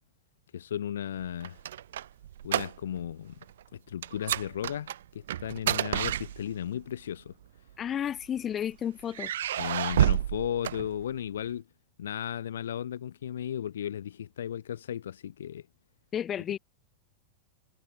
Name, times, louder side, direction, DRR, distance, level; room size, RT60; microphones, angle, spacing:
voice 1, 0.5-1.6 2.4-3.4 3.7-7.3 9.6-11.6 12.0-15.7, left 10 dB, 65° left, 6.6 m, -35 dB
sound 1, 1.2-3.1 3.4-3.6 4.0-6.8 7.7-8.5 9.1-11.4, right 11 dB, 60° right, 1.5 m, -30 dB
voice 2, 7.8-9.3 16.1-16.6, left 9 dB, 25° left, 7.9 m, -32 dB
figure-of-eight pair, 90°, 0 cm